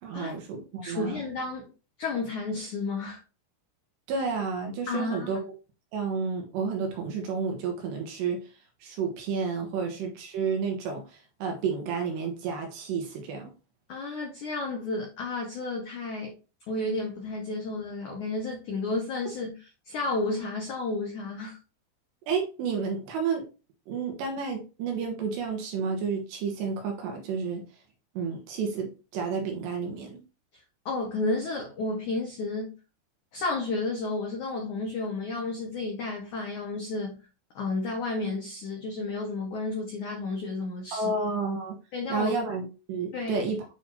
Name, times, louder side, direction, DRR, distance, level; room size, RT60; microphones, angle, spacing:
voice 1, 0.0-1.2 4.1-5.5 5.9-8.4 8.8-13.5 22.3-23.5 23.9-27.6 28.1-30.2 40.9-41.8 42.1-43.6, right 5 dB, 70° right, 3.1 m, -31 dB
voice 2, 0.8-1.7 2.0-3.2 4.9-5.4 9.7-9.8 13.9-16.3 16.7-19.6 19.8-21.6 30.8-32.7 33.3-37.2 37.5-41.1 41.9-42.3 43.1-43.5, left 3 dB, 75° left, 1.8 m, -32 dB
8.8 x 4.1 x 2.7 m
omnidirectional pair, 5.7 m